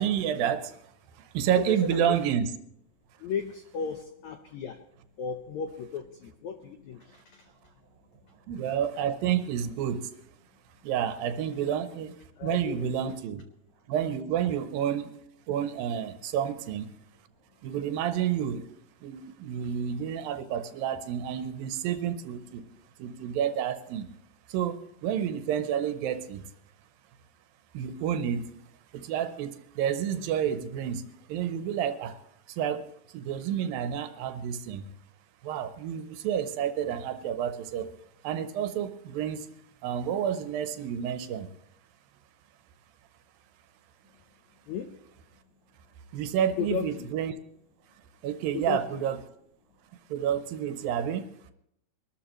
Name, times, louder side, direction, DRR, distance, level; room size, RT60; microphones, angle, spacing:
voice 1, 0.0-2.5 8.5-10.1 10.8-13.4 13.9-15.1 15.5-16.9 17.6-18.7 19.0-22.6 23.0-24.1 24.5-26.5 27.7-28.5 28.9-32.2 32.5-34.9 35.4-37.9 38.2-39.5 39.8-41.5 46.1-47.3 48.2-49.2 50.1-51.3, right 9 dB, 75° right, 9 dB, 2.5 m, -30 dB
voice 2, 1.6-2.0 3.2-4.8 5.2-7.5 8.2-8.3 12.4-13.1 19.6-19.7 44.7-44.9 46.6-47.1 48.5-49.0, left 6 dB, 80° left, 6 dB, 1.6 m, -35 dB
23.5 x 13.0 x 3.1 m, 0.75 s
omnidirectional pair, 4.3 m